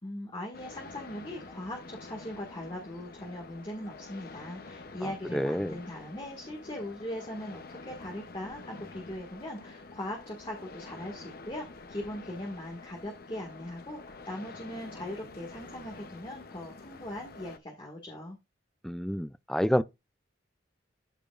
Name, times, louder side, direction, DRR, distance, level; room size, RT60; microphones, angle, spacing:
voice 1, 0.0-18.4, left 1 dB, 25° left, 1.8 m, -40 dB
sound 1, 0.5-17.6, left 3 dB, 55° left, 0.8 m, -47 dB
voice 2, 5.0-5.8 18.8-19.8, equal, ahead, 0.3 m, -29 dB
14.0 x 5.0 x 2.5 m
head